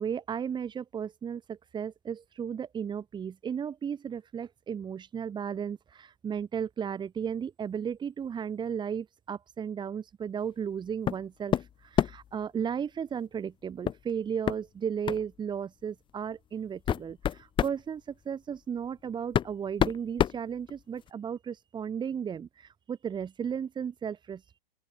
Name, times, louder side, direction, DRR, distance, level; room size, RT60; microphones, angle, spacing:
voice 1, 0.0-11.6 11.9-24.6, right 7 dB, 15° right, 7.7 m, -35 dB
sound 1, 11.1-11.2 11.5-12.3 13.9-14.0 14.5-14.6 15.1-15.3 16.1-16.2 16.7-17.8 18.8-18.9 19.3-21.1, left 9 dB, 15° left, 1.8 m, -28 dB
open air
hypercardioid pair, 150°, 29 cm